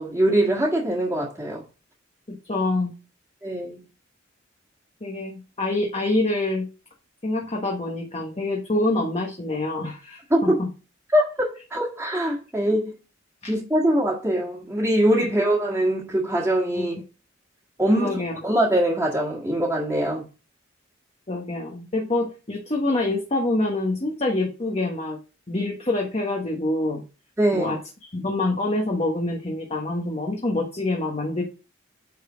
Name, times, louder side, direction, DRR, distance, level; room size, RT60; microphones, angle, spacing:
voice 1, 0.0-1.6 3.4-3.8 10.3-10.6 11.1-13.0 13.5-17.0 17.8-18.2 18.4-20.3 27.4-27.8, right 1 dB, 10° right, 1.9 m, -22 dB
voice 2, 2.3-2.9 5.0-6.7 7.2-10.7 16.7-16.9 18.0-18.3 21.3-25.2 25.5-27.0 27.5-27.8 28.1-31.4, left 2 dB, 35° left, 1.4 m, -26 dB
9.2 x 4.1 x 5.1 m
head